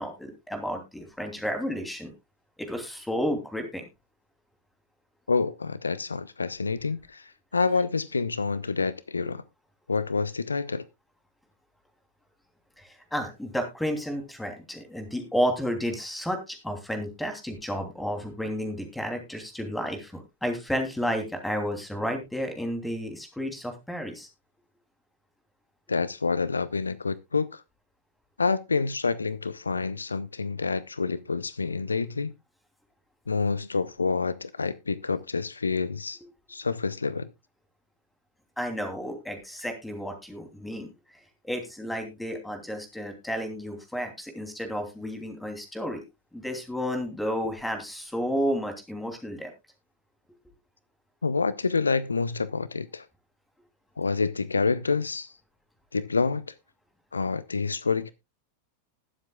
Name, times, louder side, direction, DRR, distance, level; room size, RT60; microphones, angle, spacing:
voice 1, 0.0-2.1 2.6-3.8 12.8-24.3 38.6-40.9 41.4-46.0 46.3-49.5, equal, 5° left, 3.0 m, -31 dB
voice 2, 5.3-9.4 9.9-10.8 25.9-27.6 28.4-32.3 33.3-36.2 36.5-37.3 51.2-53.1 54.0-55.3 55.9-56.5 57.1-58.1, left 4 dB, 75° left, 0.5 m, -28 dB
20.5 x 7.5 x 2.3 m
figure-of-eight pair, 90°, 0 cm